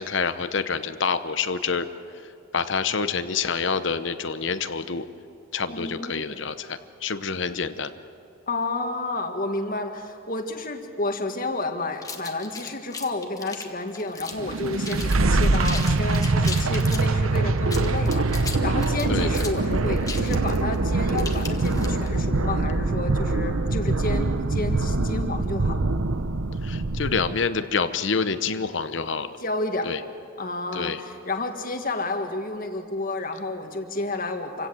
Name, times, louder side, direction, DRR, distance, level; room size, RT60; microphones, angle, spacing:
voice 1, 0.0-1.9 2.5-5.1 5.5-7.9 19.1-19.3 26.6-29.3 29.8-30.0 30.7-31.0, left 5 dB, 60° left, 11 dB, 0.9 m, -27 dB
voice 2, 5.7-6.4 8.5-25.8 29.4-29.9 30.4-34.7, left 2 dB, 40° left, 5 dB, 1.8 m, -30 dB
sound 1, 12.0-14.5 14.8-15.2 15.4-17.1 17.6-22.2, left 4 dB, 15° left, 1.4 m, -36 dB
sound 2, 14.3-27.4, right 2 dB, 85° right, 0.9 m, -24 dB
27.5 x 16.5 x 7.7 m, 2.7 s
head